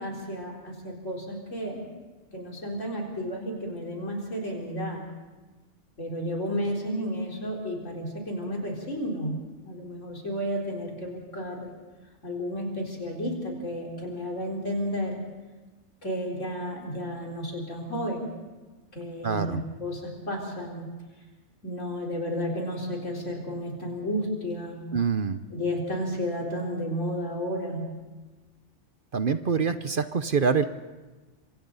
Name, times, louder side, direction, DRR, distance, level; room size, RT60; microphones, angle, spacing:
voice 1, 0.0-1.8 2.3-5.1 6.0-9.4 9.6-11.7 12.2-15.2 16.0-18.3 18.9-20.9 21.6-24.9 25.5-27.9, equal, 80° left, -1 dB, 4.5 m, -32 dB
voice 2, 19.2-19.6 24.9-25.4 29.1-30.7, right 5 dB, 50° right, 11 dB, 0.9 m, -25 dB
26.0 x 25.0 x 4.0 m, 1.2 s
omnidirectional pair, 1.3 m